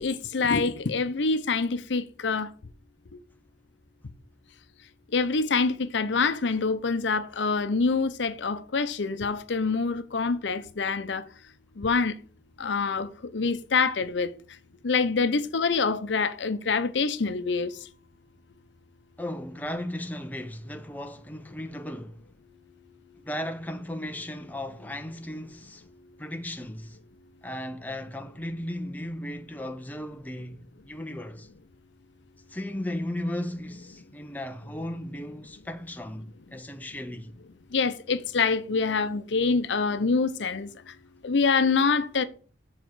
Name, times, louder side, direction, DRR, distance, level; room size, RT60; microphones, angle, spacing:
voice 1, 0.0-2.5 5.1-11.3 11.8-12.1 12.6-14.3 14.8-17.7 37.7-40.7 41.2-42.2, left 4 dB, 85° left, 0.6 m, -26 dB
voice 2, 19.2-22.2 23.2-25.9 26.2-27.0 27.4-31.5 32.5-37.3, left 1 dB, 10° left, 0.6 m, -36 dB
7.2 x 4.3 x 6.1 m
head